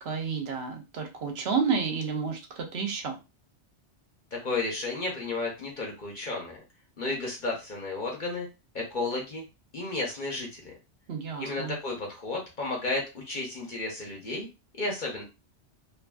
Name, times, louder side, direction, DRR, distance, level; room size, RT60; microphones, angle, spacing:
voice 1, 0.0-3.2 11.1-11.8, right 5 dB, 65° right, 3 dB, 0.9 m, -30 dB
voice 2, 4.3-6.6 7.0-8.5 8.7-9.4 9.7-10.6 11.4-14.5 14.8-15.2, left 2 dB, 45° left, -2 dB, 0.9 m, -32 dB
2.6 x 2.6 x 2.3 m, 0.27 s
omnidirectional pair, 1.2 m